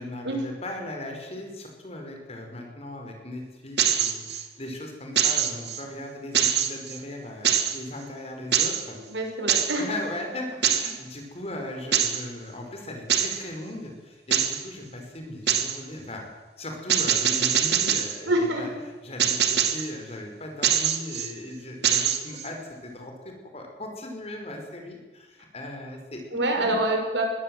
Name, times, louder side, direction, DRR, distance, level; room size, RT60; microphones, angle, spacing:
voice 1, 0.0-9.0 9.8-16.2 16.6-18.7 19.0-26.2 26.5-26.8, left 1 dB, 35° left, 3 dB, 5.2 m, -38 dB
sound 1, 3.8-4.4 5.2-5.8 6.3-7.0 7.4-7.8 8.5-8.9 9.5-9.8 10.6-11.0 11.9-12.2 13.1-13.4 14.3-14.6 15.5-15.8 16.9-18.2 19.2-19.9 20.6-21.3 21.8-22.5, right 9 dB, 65° right, 2.3 m, -23 dB
voice 2, 9.1-9.8 18.3-18.6 26.3-27.2, right 1 dB, 85° right, 3 dB, 5.6 m, -25 dB
22.0 x 17.0 x 8.0 m, 1.3 s
head